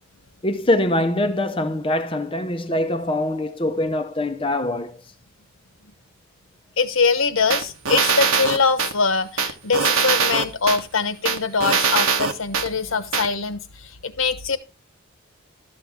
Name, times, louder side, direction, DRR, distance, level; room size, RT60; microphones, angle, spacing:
voice 1, 0.4-5.0, left 1 dB, 25° left, 0.7 m, -23 dB
voice 2, 6.8-14.6, left 4 dB, 70° left, 1.1 m, -23 dB
sound 1, 7.5-8.9 9.4-10.8 11.3-12.7 13.1-13.3, right 5 dB, 85° right, 1.2 m, -21 dB
12.5 x 7.0 x 3.4 m
head